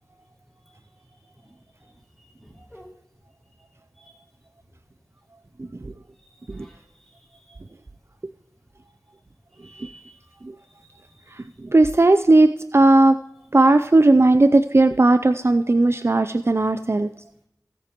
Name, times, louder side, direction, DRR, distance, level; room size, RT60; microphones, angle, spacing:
voice 1, 1.8-2.9 4.0-4.1 6.3-7.5 9.6-10.2 10.6-11.5, right 1 dB, 5° left, -3 dB, 5.3 m, -52 dB
voice 2, 11.3-13.2 13.5-17.1, right 2 dB, 40° right, 10 dB, 0.4 m, -17 dB
19.5 x 8.5 x 3.0 m, 0.76 s
wide cardioid pair, 40°, 6 cm